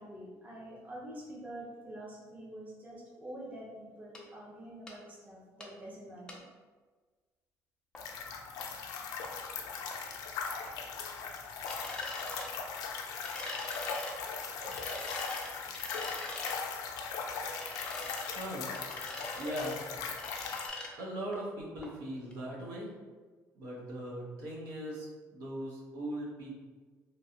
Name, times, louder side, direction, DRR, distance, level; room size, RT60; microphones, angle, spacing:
voice 1, 0.0-6.5, right 1 dB, 25° right, -4 dB, 0.7 m, -46 dB
sound 1, 4.1-4.2 4.9-5.0 5.6-5.7 6.3-6.4 7.9-8.0 8.6-8.7 9.2-9.3 9.9-10.0 10.7-10.8 11.7-12.5 13.2-14.1 14.7-16.6 17.5-18.5 18.7-19.8 20.1-20.9 21.3-21.4 21.8-21.9 22.3-22.4, left 2 dB, 15° left, 0.4 m, -43 dB
sound 2, 8.0-20.7, left 5 dB, 80° left, 0.4 m, -39 dB
voice 2, 18.3-18.7 19.4-19.8 21.0-22.9 23.5-26.5, right 1 dB, 80° right, -4 dB, 0.9 m, -39 dB
3.0 x 2.6 x 2.7 m, 1.4 s
cardioid pair, 150°, 6 cm